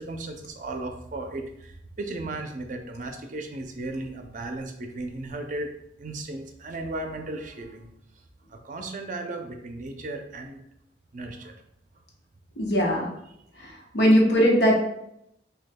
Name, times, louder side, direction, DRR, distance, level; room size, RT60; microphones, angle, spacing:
voice 1, 0.0-1.7 2.0-5.7 6.0-7.9 8.5-10.6 11.1-11.5, right 2 dB, 45° right, 5 dB, 0.5 m, -35 dB
voice 2, 12.6-13.1 13.6-14.8, equal, 75° left, -1 dB, 0.9 m, -20 dB
6.2 x 2.3 x 2.2 m, 0.77 s
head